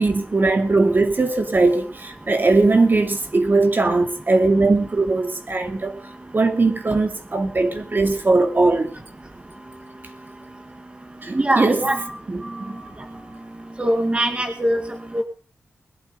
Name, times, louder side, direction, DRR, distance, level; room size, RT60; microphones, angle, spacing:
voice 1, 0.0-6.0 6.3-8.9 11.2-11.9 12.3-12.8, right 3 dB, 45° right, 2.6 m, -19 dB
voice 2, 11.3-12.1 12.6-12.7 13.8-14.8 15.1-15.2, right 1 dB, 25° right, 2.0 m, -21 dB
21.5 x 8.5 x 6.9 m
wide cardioid pair, 70°, 5 cm